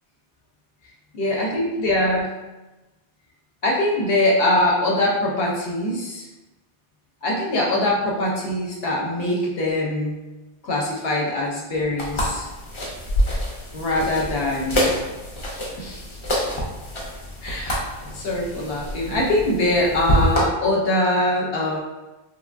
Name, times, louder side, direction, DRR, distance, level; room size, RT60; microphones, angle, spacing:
voice 1, 1.1-2.3 3.6-6.3 7.2-10.1 10.6-12.5 13.7-14.9 15.8-16.0 17.4-17.8 18.1-21.8, left 1 dB, 65° left, -2 dB, 0.8 m, -22 dB
sound 1, 12.0-20.4, equal, 35° left, 0.5 m, -26 dB
3.2 x 2.2 x 2.4 m, 1.1 s
omnidirectional pair, 1.1 m